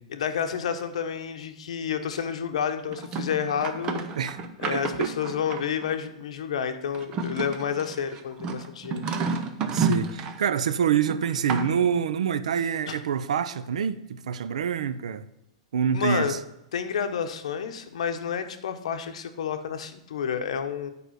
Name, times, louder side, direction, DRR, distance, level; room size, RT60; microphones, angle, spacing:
voice 1, 0.1-4.0 4.6-9.2 12.9-13.0 15.9-16.4 16.7-20.9, left 7 dB, 70° left, 1.0 m, -30 dB
sound 1, 2.9-6.0 6.9-10.5 11.1-11.9, right 4 dB, 20° right, 0.6 m, -31 dB
voice 2, 4.7-5.1 9.7-15.2 15.7-16.4, right 7 dB, 90° right, 0.6 m, -26 dB
9.1 x 5.0 x 6.4 m
supercardioid pair, 180°, 3 cm